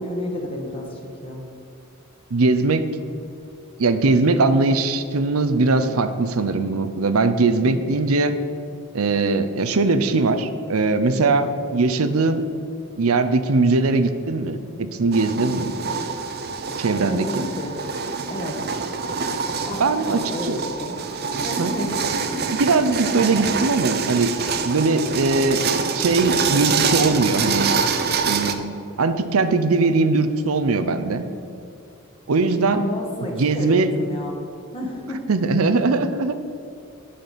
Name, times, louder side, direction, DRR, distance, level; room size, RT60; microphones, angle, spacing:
voice 1, 0.0-1.4 7.6-7.8 16.9-17.7 18.3-18.6 19.6-20.6 20.9-21.0 21.4-21.9 22.2-22.4 23.3-23.4 32.7-34.3 34.7-35.2, left 1 dB, 25° left, 0 dB, 1.3 m, -31 dB
voice 2, 2.3-2.8 3.8-8.3 8.9-12.4 13.0-15.7 16.8-17.3 19.8-20.6 21.6-21.7 22.6-24.3 24.6-25.6 25.9-27.7 28.3-31.2 32.3-32.8 33.3-33.9 35.3-36.4, right 3 dB, 85° right, 11 dB, 0.7 m, -20 dB
sound 1, 15.1-28.5, right 5 dB, 50° right, 0.6 m, -25 dB
8.6 x 5.8 x 7.1 m, 2.5 s
head